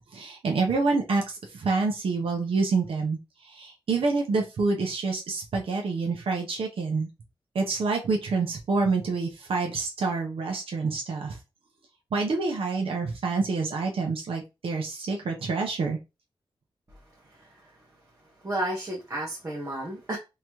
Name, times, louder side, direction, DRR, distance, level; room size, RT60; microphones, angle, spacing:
voice 1, 0.1-3.2 3.5-7.1 7.5-11.4 12.1-16.0, right 4 dB, 90° right, 0.9 m, -27 dB
voice 2, 18.4-20.2, right 1 dB, 30° right, 1.1 m, -32 dB
3.6 x 3.0 x 3.1 m
wide cardioid pair, 150°, 9 cm